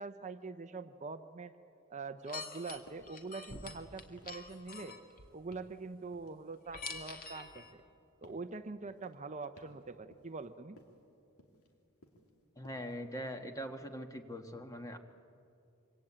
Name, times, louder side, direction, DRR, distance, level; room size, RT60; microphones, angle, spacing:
voice 1, 0.0-1.5 1.9-5.0 5.3-7.8 8.2-10.8, right 4 dB, 35° right, 9 dB, 0.7 m, -44 dB
sound 1, 2.3-5.3 6.7-7.7, left 4 dB, 40° left, 2.2 m, -46 dB
sound 2, 2.9-3.1 3.5-3.8 4.2-4.5 4.8-5.1 5.5-5.8 6.1-7.1 7.5-7.9 8.2-8.5 8.9-9.2 9.6-9.8 10.1-10.5 10.8-11.0 11.4-11.7 12.0-12.3 12.6-12.9, left 1 dB, 90° left, 3.1 m, -61 dB
voice 2, 12.6-15.0, equal, 15° left, 6 dB, 1.6 m, -42 dB
26.5 x 24.5 x 8.8 m, 2.6 s
head